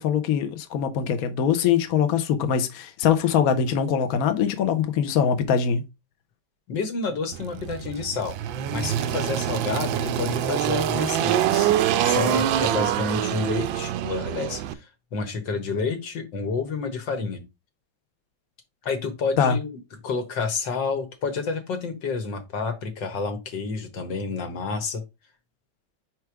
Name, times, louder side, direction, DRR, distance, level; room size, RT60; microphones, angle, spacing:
voice 1, 0.0-5.8 19.4-19.6, left 7 dB, 60° left, 1.1 m, -22 dB
voice 2, 6.7-8.4 8.7-11.7 12.0-17.4 18.8-19.7 20.0-25.0, left 4 dB, 75° left, 2.0 m, -29 dB
Engine, 7.3-14.7, right 11 dB, 85° right, 1.4 m, -25 dB
4.7 x 4.6 x 4.7 m
omnidirectional pair, 2.0 m